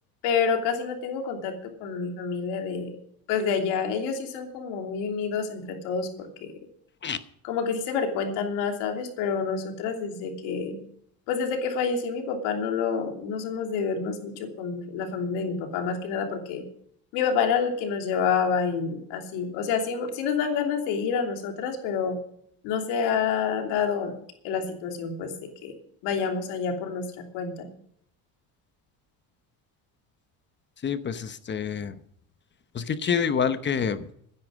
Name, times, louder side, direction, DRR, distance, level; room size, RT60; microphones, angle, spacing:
voice 1, 0.2-1.5 1.8-2.9 3.3-6.5 7.4-10.8 11.3-16.6 17.1-22.2 22.6-24.1 24.4-25.3 25.6-25.7 26.0-27.0 27.3-27.7, left 6 dB, 80° left, 3 dB, 3.0 m, -28 dB
voice 2, 30.8-31.9 32.9-34.0, left 7 dB, 30° left, 12 dB, 0.9 m, -27 dB
13.0 x 10.0 x 6.3 m, 0.67 s
cardioid pair, 130°, 40 cm